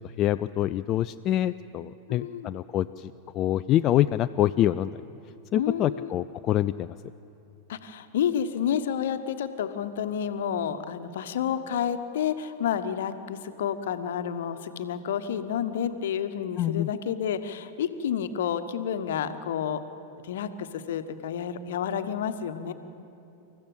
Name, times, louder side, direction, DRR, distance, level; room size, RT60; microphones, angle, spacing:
voice 1, 0.0-4.9 5.5-6.9 16.6-16.9, left 12 dB, 35° left, 12 dB, 0.4 m, -26 dB
voice 2, 2.1-2.5 5.5-6.1 7.7-19.8 20.2-22.7, left 8 dB, 60° left, 10 dB, 1.2 m, -30 dB
27.5 x 14.5 x 7.8 m, 2.9 s
figure-of-eight pair, 90°, 0 cm